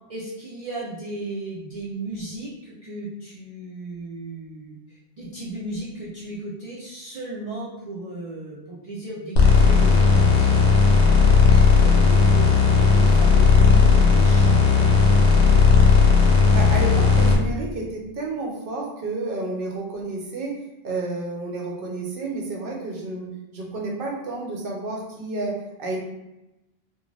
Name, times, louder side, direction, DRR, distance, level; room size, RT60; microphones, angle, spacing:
voice 1, 0.1-10.6 11.0-15.8, right 2 dB, 45° right, -8 dB, 0.5 m, -35 dB
sound 1, 9.4-17.4, left 5 dB, 70° left, 0.8 m, -15 dB
voice 2, 16.5-20.6 20.8-26.0, right 2 dB, 65° right, -1 dB, 0.8 m, -30 dB
2.4 x 2.2 x 3.1 m, 0.95 s
omnidirectional pair, 1.1 m